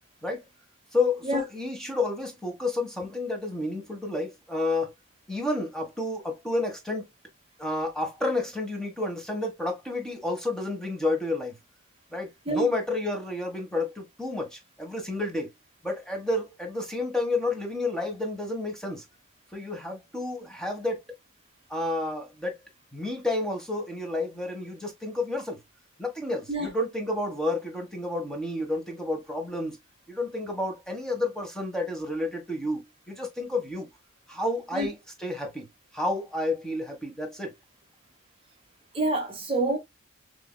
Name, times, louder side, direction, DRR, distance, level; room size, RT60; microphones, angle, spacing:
voice 1, 0.9-4.9 5.3-7.0 7.6-11.5 12.1-15.5 15.8-19.0 19.5-21.0 21.7-22.6 22.9-25.6 26.0-29.8 30.1-33.9 34.3-35.7 35.9-37.5, left 2 dB, 5° left, 1.3 m, -30 dB
voice 2, 38.9-39.8, right 2 dB, 25° right, 1.0 m, -27 dB
6.9 x 2.9 x 2.2 m
head